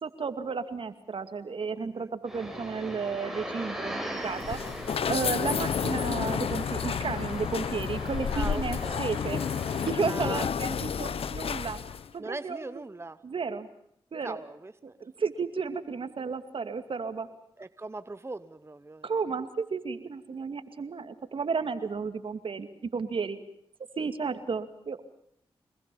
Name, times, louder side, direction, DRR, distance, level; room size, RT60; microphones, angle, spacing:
voice 1, 0.0-4.6 5.1-9.4 9.9-11.8 12.1-12.8 13.2-13.7 14.1-14.4 15.0-17.3 19.0-23.4 24.0-25.2, right 5 dB, 65° right, 10 dB, 2.4 m, -33 dB
voice 2, 1.8-2.1 5.0-5.2 8.3-9.0 10.0-10.5 12.2-13.2 14.2-14.7 17.6-19.1, right 2 dB, 25° right, 13 dB, 1.1 m, -40 dB
sound 1, 2.3-9.9, right 1 dB, 5° right, 7.3 m, -40 dB
sound 2, 4.2-12.1, left 7 dB, 80° left, 1.1 m, -31 dB
26.5 x 20.5 x 7.1 m, 0.72 s
cardioid pair, 50°, 10 cm